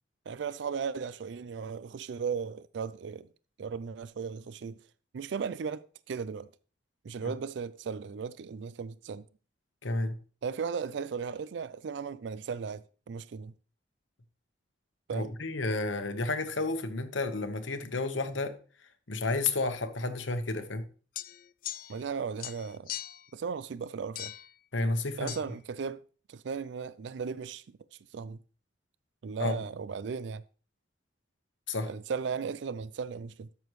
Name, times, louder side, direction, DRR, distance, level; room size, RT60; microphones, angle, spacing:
voice 1, 0.3-3.3 3.6-4.8 5.1-6.5 7.0-9.3 10.4-13.5 15.1-15.3 21.9-22.9 23.3-24.3 25.2-26.0 26.3-27.8 28.1-28.4 29.2-30.4 31.9-33.5, right 6 dB, 70° right, 0.4 m, -36 dB
voice 2, 9.8-10.2 15.1-18.5 19.1-20.8 24.7-25.3 29.4-29.6 31.7-31.9, left 3 dB, 85° left, 1.2 m, -31 dB
sound 1, 21.2-22.1 22.4-23.3 24.2-24.5 25.3-25.4, left 14 dB, 50° left, 0.3 m, -40 dB
12.5 x 6.9 x 3.1 m
head